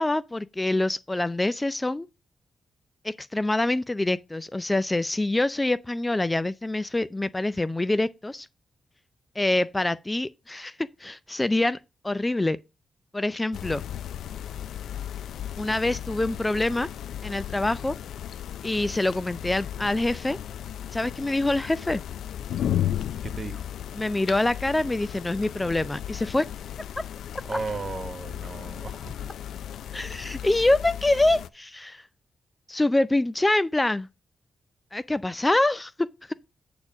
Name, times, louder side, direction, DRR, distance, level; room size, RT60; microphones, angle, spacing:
voice 1, 0.0-2.1 3.0-8.5 9.4-11.8 12.0-12.6 13.1-13.8 15.6-16.9 17.2-18.0 18.6-20.4 20.9-22.0 23.9-26.5 29.9-32.0 32.7-34.1 34.9-36.3, left 2 dB, 15° left, 0.4 m, -25 dB
sound 1, 13.5-31.5, left 10 dB, 85° left, 0.4 m, -35 dB
voice 2, 23.2-23.6 27.4-29.1, right 4 dB, 40° right, 1.2 m, -35 dB
8.6 x 4.4 x 5.9 m
cardioid pair, 80°, 0 cm